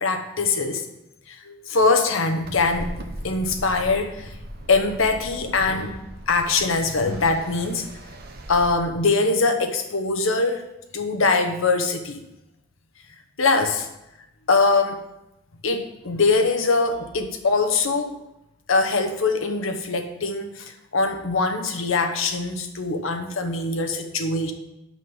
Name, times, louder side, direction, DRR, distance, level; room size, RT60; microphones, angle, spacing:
voice 1, 0.0-0.8 1.3-2.9 3.2-4.3 4.7-7.9 8.5-10.7 10.9-12.2 13.4-13.9 14.5-15.0 15.6-18.2 18.7-24.5, left 3 dB, 70° left, 6 dB, 1.0 m, -22 dB
sound 1, 2.4-8.7, right 1 dB, 45° right, 0.8 m, -39 dB
6.3 x 5.6 x 7.1 m, 0.91 s
head